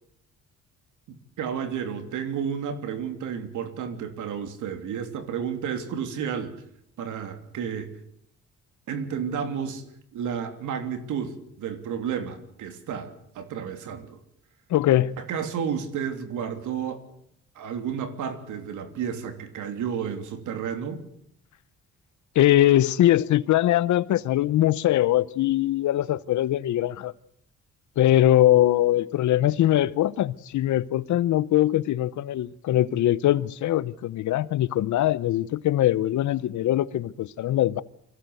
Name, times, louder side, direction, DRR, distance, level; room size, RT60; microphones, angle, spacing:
voice 1, 1.1-6.5 7.0-7.9 8.9-9.8 10.1-14.2 15.2-17.0 17.5-21.0, right 7 dB, 80° right, 3.2 m, -31 dB
voice 2, 14.7-15.2 22.3-27.1 28.0-37.8, left 13 dB, 70° left, 0.9 m, -22 dB
25.0 x 16.5 x 8.0 m
cardioid pair, 90°, 30 cm